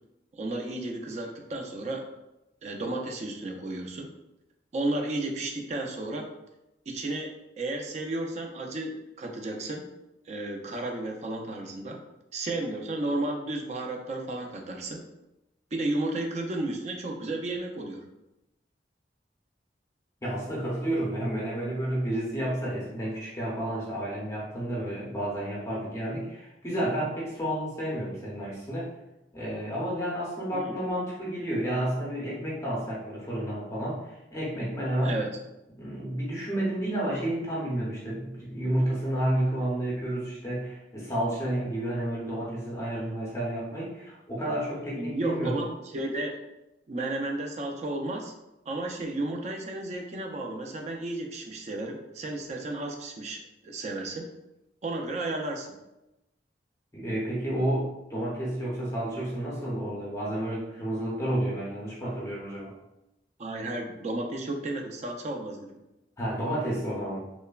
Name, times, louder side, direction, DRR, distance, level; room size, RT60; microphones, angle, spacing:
voice 1, 0.4-2.1 2.6-4.1 4.7-6.3 6.9-9.8 10.3-12.0 12.3-15.0 15.7-18.1 30.5-30.7 35.0-35.3 45.0-46.4 46.9-48.3 48.7-54.2 54.8-55.7 63.4-65.8, right 2 dB, 40° right, 2 dB, 0.3 m, -33 dB
voice 2, 20.2-28.9 29.3-35.2 35.8-45.7 56.9-62.7 66.2-67.2, right 1 dB, 15° left, -6 dB, 0.6 m, -31 dB
3.0 x 2.1 x 2.2 m, 0.93 s
head